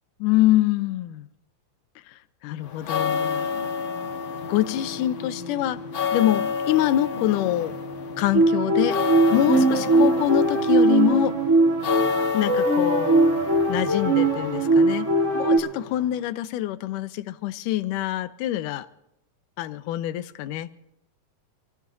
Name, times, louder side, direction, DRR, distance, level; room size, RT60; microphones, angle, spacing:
voice 1, 0.2-1.3 2.4-3.5 4.5-5.8 6.1-7.7 8.2-9.0 9.3-11.3 12.3-13.3 13.7-15.1 15.3-18.9 19.6-20.7, left 14 dB, 80° left, 2.2 m, -25 dB
sound 1, 2.6-16.2, left 5 dB, 55° left, 1.5 m, -30 dB
sound 2, 8.3-15.6, right 2 dB, 35° right, 1.2 m, -20 dB
26.5 x 16.5 x 2.7 m
omnidirectional pair, 3.8 m